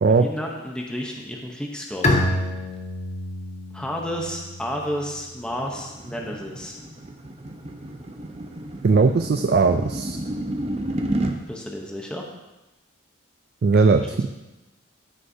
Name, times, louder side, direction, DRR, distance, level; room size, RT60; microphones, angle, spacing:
voice 1, 0.1-2.2 3.7-6.8 11.5-12.2 13.9-14.3, equal, 5° left, -1 dB, 0.8 m, -32 dB
Bowed string instrument, 2.0-5.6, left 1 dB, 35° left, 0.9 m, -27 dB
sound 1, 4.9-11.4, right 1 dB, 30° right, 0.7 m, -31 dB
voice 2, 8.8-10.2 13.6-14.3, right 4 dB, 50° right, 7 dB, 0.4 m, -18 dB
15.0 x 6.4 x 2.7 m, 1.0 s
head